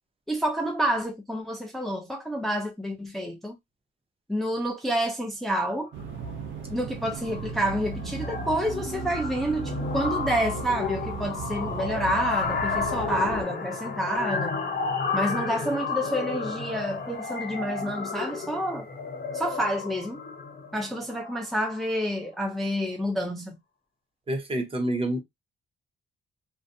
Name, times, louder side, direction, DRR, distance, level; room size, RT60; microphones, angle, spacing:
voice 1, 0.3-3.6 4.3-5.9 6.7-14.6 15.1-18.8 19.3-20.2 20.7-23.6, equal, ahead, 0.5 m, -29 dB
sound 1, 5.9-13.4, right 6 dB, 75° right, 0.5 m, -36 dB
sound 2, 6.0-6.3 6.6-6.9 7.1-22.0, left 5 dB, 50° left, 0.8 m, -32 dB
voice 2, 24.3-25.2, right 1 dB, 30° right, 0.8 m, -27 dB
2.5 x 2.2 x 2.5 m
cardioid pair, 90°, 20 cm